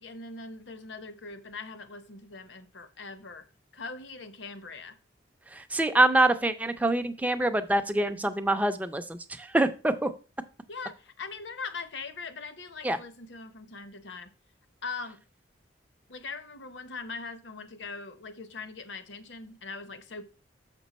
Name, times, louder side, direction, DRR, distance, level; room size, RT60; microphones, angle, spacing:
voice 1, 0.0-3.4 3.7-4.9 10.7-14.3 14.8-15.2 16.1-20.2, left 4 dB, 70° left, 11 dB, 0.8 m, -41 dB
voice 2, 5.5-10.1 12.8-13.0, right 1 dB, 10° right, 8 dB, 0.4 m, -25 dB
6.6 x 5.3 x 4.1 m, 0.35 s
head